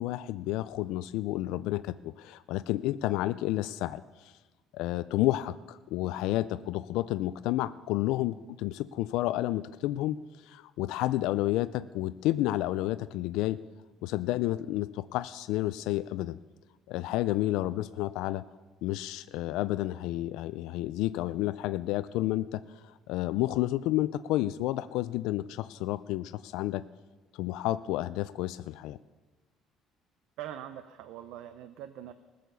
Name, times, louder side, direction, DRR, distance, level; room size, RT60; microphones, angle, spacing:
voice 1, 0.0-4.3 4.7-13.6 14.0-16.4 16.9-18.4 18.8-26.8 27.3-29.0, left 15 dB, 75° left, 13 dB, 0.3 m, -31 dB
voice 2, 30.4-32.1, right 11 dB, 70° right, 11 dB, 0.6 m, -42 dB
19.5 x 6.6 x 6.8 m, 1.3 s
cardioid pair, 165°, 0 cm